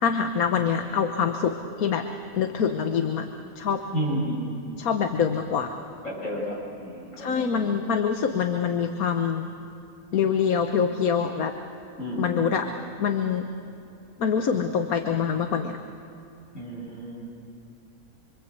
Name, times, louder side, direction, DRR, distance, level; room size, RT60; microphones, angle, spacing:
voice 1, 0.0-2.1 2.3-3.3 3.5-3.8 4.8-5.7 7.2-9.5 10.1-11.5 12.2-12.7 13.0-13.5 14.2-15.8, left 7 dB, 80° left, 6 dB, 1.5 m, -25 dB
voice 2, 3.9-4.4 6.0-7.7 12.0-12.4 16.5-17.3, equal, 60° left, -4 dB, 7.5 m, -31 dB
27.0 x 25.0 x 8.2 m, 2.7 s
omnidirectional pair, 1.5 m